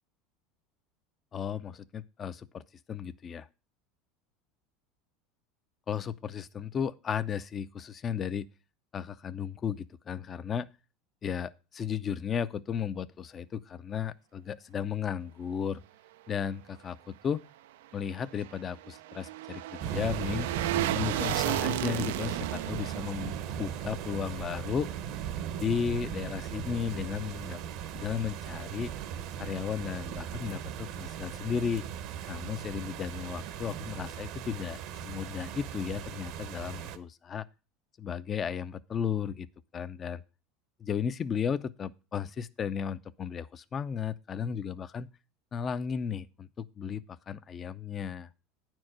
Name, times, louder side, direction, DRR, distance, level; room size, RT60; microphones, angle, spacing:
voice 1, 1.3-2.6 2.9-3.5 5.9-8.5 8.9-10.7 11.2-15.8 16.3-17.4 17.9-20.5 20.9-24.9 25.6-27.6 27.9-28.9 29.4-31.9 32.3-37.4 38.0-39.5 39.7-40.2 40.8-45.1 45.5-48.3, left 7 dB, 30° left, 0.5 m, -34 dB
sound 1, 18.0-25.2 25.5-25.6, right 15 dB, 85° right, 0.3 m, -35 dB
sound 2, 19.8-37.0, right 9 dB, 60° right, 0.8 m, -38 dB
9.5 x 4.6 x 6.2 m
supercardioid pair, 130°, 0 cm